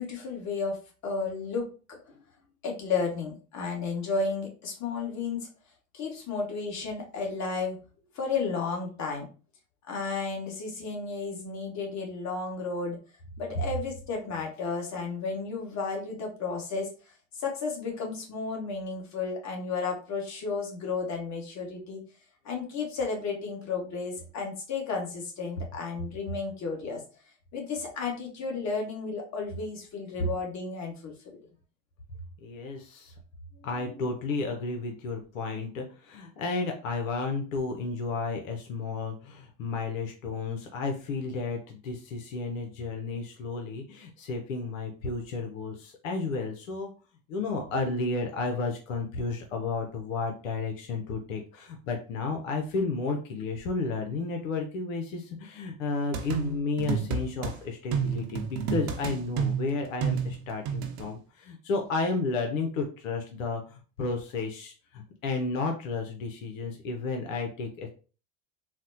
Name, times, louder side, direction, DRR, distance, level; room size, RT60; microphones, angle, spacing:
voice 1, 0.0-2.0 2.6-5.5 5.9-7.8 8.1-9.3 9.9-13.0 13.4-22.0 22.4-27.0 27.5-31.4 33.5-34.1 61.8-61.9, left 4 dB, 45° left, 0 dB, 1.4 m, -33 dB
voice 2, 32.4-33.1 33.6-46.9 47.3-67.9, left 3 dB, 90° left, 3 dB, 0.7 m, -32 dB
sound 1, 56.1-57.5 57.9-61.0, right 6 dB, 65° right, 0.9 m, -30 dB
4.1 x 2.1 x 2.7 m, 0.37 s
hypercardioid pair, 90°, 38 cm